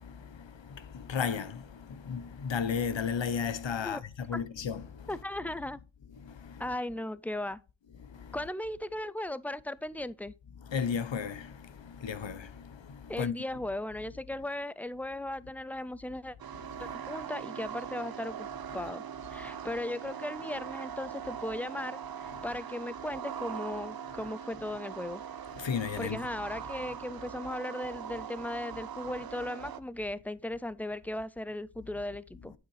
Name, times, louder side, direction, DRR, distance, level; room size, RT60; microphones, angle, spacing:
voice 1, 0.0-5.1 6.2-6.6 8.0-8.4 10.7-13.3 16.8-17.0 19.4-19.5 25.6-26.2, left 6 dB, 60° left, 0.9 m, -35 dB
voice 2, 5.1-5.8 6.6-7.6 8.3-10.3 13.1-16.4 16.8-18.5 18.7-19.0 19.3-25.2 26.0-32.5, left 1 dB, 5° left, 0.3 m, -37 dB
sound 1, 16.4-29.8, right 8 dB, 45° right, 0.6 m, -41 dB
8.9 x 7.6 x 3.2 m
wide cardioid pair, 85°, 50 cm